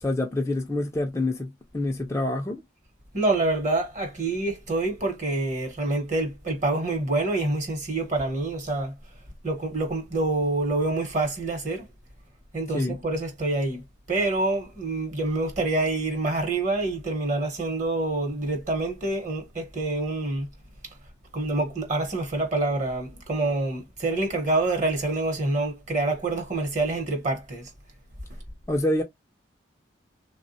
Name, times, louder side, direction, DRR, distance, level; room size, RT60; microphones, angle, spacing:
voice 1, 0.0-2.6 12.7-13.0 28.7-29.0, left 1 dB, 15° left, 0.4 m, -27 dB
voice 2, 3.1-8.9 9.4-11.9 12.5-13.8 14.1-20.5 21.3-27.7, right 2 dB, 40° right, 0.9 m, -26 dB
3.3 x 2.1 x 2.6 m
head